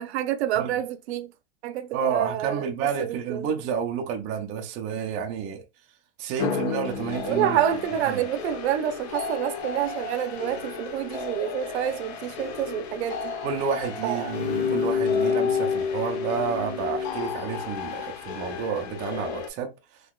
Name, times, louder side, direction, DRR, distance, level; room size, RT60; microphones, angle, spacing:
voice 1, 0.0-1.3 1.6-2.7 3.0-3.5 7.3-13.3 14.0-14.4, right 11 dB, 70° right, 0.6 m, -28 dB
voice 2, 1.9-5.6 6.2-7.6 8.0-8.2 13.4-19.7, right 7 dB, 20° right, 0.4 m, -30 dB
sound 1, 6.4-19.5, left 6 dB, 65° left, 1.0 m, -31 dB
3.7 x 2.7 x 2.3 m
supercardioid pair, 165°, 34 cm